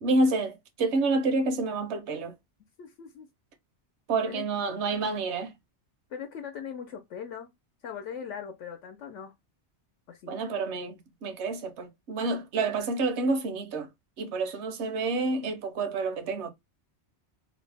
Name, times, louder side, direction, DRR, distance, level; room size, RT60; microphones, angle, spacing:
voice 1, 0.0-2.3 4.1-5.5 10.3-13.9 14.2-16.5, right 3 dB, 75° right, 1.0 m, -28 dB
voice 2, 2.8-3.3 4.3-4.4 6.1-7.5 7.8-9.3 10.1-10.3, left 7 dB, 85° left, 0.9 m, -40 dB
2.8 x 2.0 x 3.3 m
omnidirectional pair, 1.2 m